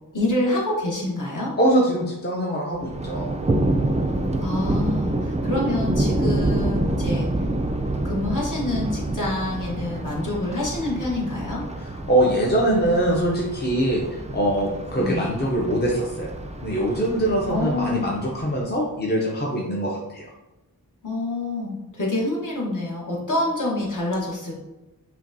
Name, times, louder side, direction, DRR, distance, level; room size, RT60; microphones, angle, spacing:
voice 1, 0.1-1.5 4.4-7.5 8.0-11.6 15.0-15.3 17.5-18.1 21.0-24.5, left 2 dB, 50° left, -4 dB, 1.2 m, -27 dB
voice 2, 1.6-3.3 11.8-16.3 16.6-20.3, right 1 dB, 25° left, -2 dB, 0.6 m, -23 dB
Thunder, 2.8-18.7, right 1 dB, 20° right, 0.3 m, -27 dB
5.7 x 2.2 x 2.7 m, 1.0 s
wide cardioid pair, 50°, 38 cm